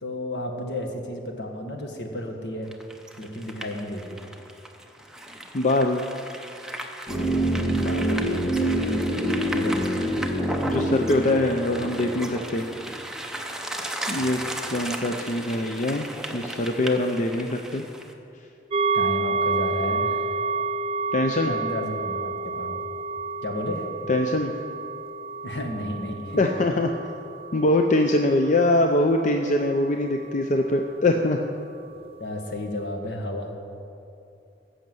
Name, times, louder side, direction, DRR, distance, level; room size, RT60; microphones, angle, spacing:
voice 1, 0.0-2.7 3.2-4.2 7.5-9.0 9.5-10.0 14.0-14.4 18.9-20.3 21.4-22.8 23.4-23.9 25.4-26.4 32.2-33.5, left 1 dB, 70° left, 3 dB, 1.6 m, -32 dB
sound 1, 2.7-18.1, right 1 dB, 5° right, 0.8 m, -36 dB
voice 2, 5.5-6.0 10.7-12.7 14.1-14.4 14.7-16.1 16.3-17.8 21.1-21.6 24.1-24.5 26.4-26.9 27.5-31.4, left 2 dB, 45° left, 4 dB, 0.6 m, -23 dB
sound 2, 7.1-13.1 13.3-13.4, right 1 dB, 30° left, 1.3 m, -26 dB
sound 3, 18.7-30.4 30.8-30.9, right 4 dB, 30° right, 0.3 m, -30 dB
15.0 x 6.5 x 7.7 m, 2.6 s
head